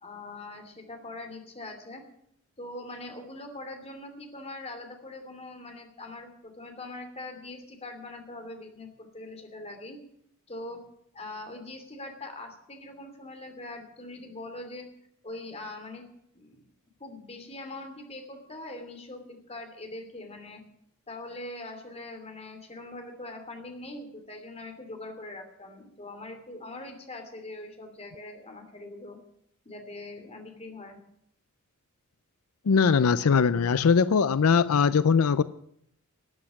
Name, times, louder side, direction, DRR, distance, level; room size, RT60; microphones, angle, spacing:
voice 1, 0.0-2.0 2.6-10.0 10.5-10.8 11.1-14.9 15.2-16.0 16.3-16.6 17.0-20.6 21.1-29.2 29.6-31.0, left 2 dB, 30° left, 5 dB, 2.8 m, -42 dB
voice 2, 32.7-35.4, left 6 dB, 90° left, 16 dB, 0.5 m, -21 dB
13.5 x 8.6 x 9.9 m, 0.73 s
head